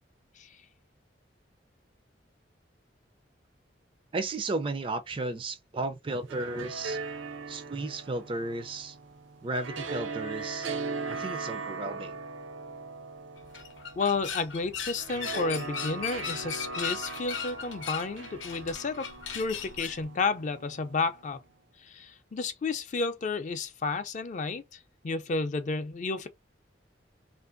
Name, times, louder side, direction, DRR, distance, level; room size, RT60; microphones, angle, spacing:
voice 1, 4.1-7.0 7.5-9.0 9.4-10.7 11.1-12.1, right 2 dB, 30° right, 0.4 m, -34 dB
sound 1, 6.1-21.3, right 4 dB, 85° right, 0.5 m, -39 dB
sound 2, 13.4-20.0, left 7 dB, 90° left, 0.6 m, -38 dB
voice 2, 14.0-21.4 21.8-26.3, left 4 dB, 40° left, 0.4 m, -32 dB
2.5 x 2.5 x 2.5 m
head